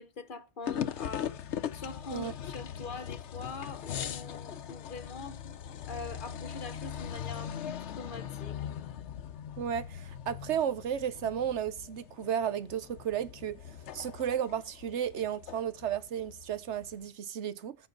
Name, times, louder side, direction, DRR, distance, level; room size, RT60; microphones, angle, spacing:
voice 1, 0.0-1.4 1.7-5.6 5.9-8.6, left 3 dB, 50° left, 1.1 m, -43 dB
sound 1, 0.7-17.0, left 9 dB, 85° left, 1.0 m, -40 dB
voice 2, 9.6-13.6 13.9-17.8, right 9 dB, 85° right, 1.1 m, -33 dB
14.0 x 6.3 x 3.9 m
omnidirectional pair, 1.1 m